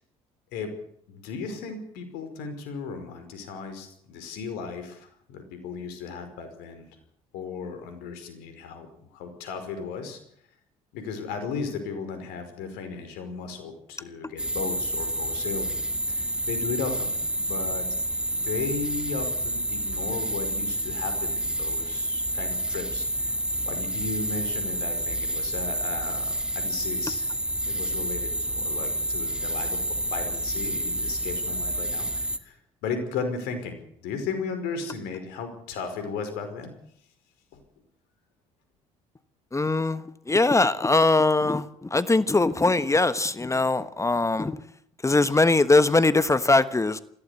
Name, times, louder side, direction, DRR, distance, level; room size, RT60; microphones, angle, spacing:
voice 1, 1.1-6.8 7.3-10.2 10.9-15.8 16.1-17.9 18.3-23.4 23.7-27.3 27.6-32.6 32.8-33.8 34.0-36.7 37.5-37.6, left 5 dB, 70° left, 8 dB, 5.3 m, -35 dB
sound 1, 14.4-32.4, right 1 dB, 5° right, 2.1 m, -29 dB
voice 2, 39.5-44.6 45.0-47.0, left 3 dB, 15° left, 14 dB, 1.3 m, -21 dB
21.5 x 16.0 x 8.4 m, 0.69 s
hypercardioid pair, 60°, 17 cm